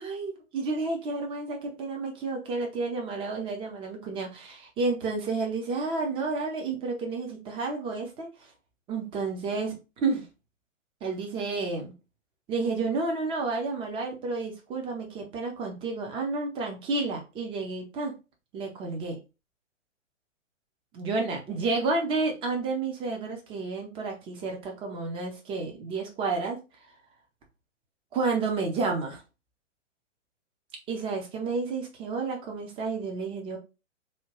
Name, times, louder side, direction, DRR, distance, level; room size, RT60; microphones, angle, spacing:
voice 1, 0.0-8.3 8.9-10.2 11.0-11.9 12.5-18.1 18.5-19.2 20.9-26.6 28.1-29.2 30.9-33.6, right 3 dB, 15° right, 2 dB, 0.5 m, -31 dB
2.8 x 2.2 x 2.9 m, 0.29 s
figure-of-eight pair, 115°, 38 cm